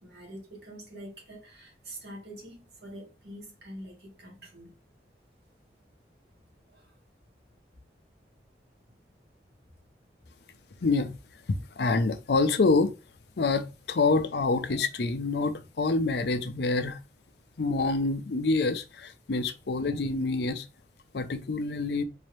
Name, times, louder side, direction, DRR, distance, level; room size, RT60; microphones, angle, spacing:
voice 1, 0.0-4.8 6.7-6.9, right 1 dB, 70° right, 2.0 m, -45 dB
voice 2, 10.8-11.2 11.5-12.9 13.4-17.0 17.6-20.7 21.1-22.0, left 3 dB, 70° left, 0.5 m, -26 dB
4.0 x 2.8 x 3.2 m
head